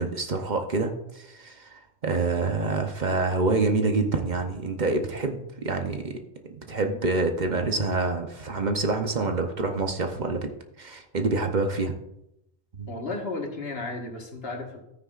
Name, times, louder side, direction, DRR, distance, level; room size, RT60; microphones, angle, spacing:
voice 1, 0.0-6.2 6.5-10.5 10.8-11.9 12.8-12.9, right 3 dB, 50° right, 5 dB, 0.9 m, -27 dB
voice 2, 12.9-14.8, left 2 dB, 75° left, 2 dB, 1.7 m, -33 dB
13.0 x 9.5 x 2.5 m, 0.85 s
omnidirectional pair, 1.0 m